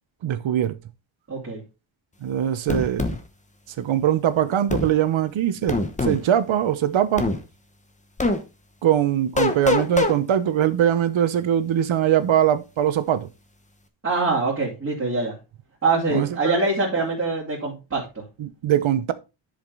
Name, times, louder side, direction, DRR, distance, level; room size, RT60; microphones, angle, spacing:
voice 1, 0.2-0.8 2.2-3.1 3.8-7.2 8.8-13.3 16.1-16.6 18.4-19.1, right 10 dB, 70° right, 1.0 m, -22 dB
voice 2, 1.3-1.6 14.0-15.4 15.8-18.2, right 3 dB, 30° right, 2.9 m, -24 dB
sound 1, 2.7-3.2 4.7-4.9 5.7-6.2 7.2-7.4 8.2-8.4 9.4-10.1, left 2 dB, 15° left, 1.0 m, -22 dB
10.5 x 5.2 x 4.0 m
wide cardioid pair, 170°, 48 cm